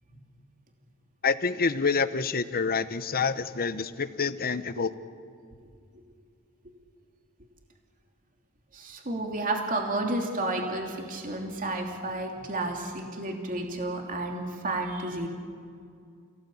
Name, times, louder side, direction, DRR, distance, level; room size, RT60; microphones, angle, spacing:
voice 1, 1.2-4.9, left 5 dB, 45° left, 13 dB, 1.0 m, -27 dB
voice 2, 8.7-15.3, right 2 dB, 40° right, 2 dB, 3.1 m, -31 dB
29.5 x 17.5 x 8.6 m, 2.3 s
head